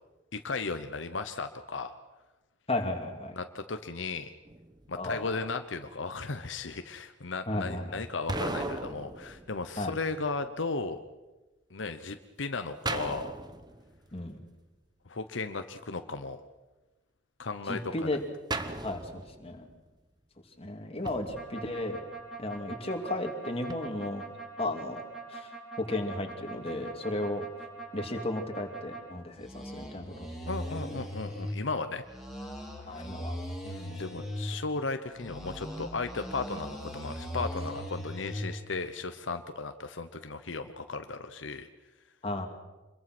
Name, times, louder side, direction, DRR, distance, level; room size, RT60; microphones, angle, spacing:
voice 1, 0.3-1.9 3.3-4.3 4.9-11.0 11.7-13.3 15.1-16.4 17.4-17.8 30.5-32.0 32.9-33.0 33.6-41.7, left 3 dB, 80° left, 8 dB, 1.0 m, -35 dB
voice 2, 2.7-3.3 5.0-5.4 7.5-8.0 9.8-10.0 14.1-14.4 17.7-18.2 18.8-19.7 20.6-22.0 22.4-24.3 24.6-25.0 25.3-25.5 25.8-27.4 27.9-31.0 32.8-33.3 42.2-42.5, left 1 dB, 30° left, 4 dB, 2.7 m, -34 dB
sound 1, 4.5-5.3 8.3-10.2 12.9-14.4 18.5-19.8 21.1-22.2 23.7-23.8, right 2 dB, 25° right, 1.2 m, -38 dB
sound 2, 21.4-29.0 29.3-31.6 32.0-34.5 35.1-38.5, equal, ahead, 4.9 m, -40 dB
26.0 x 22.0 x 6.2 m, 1.1 s
head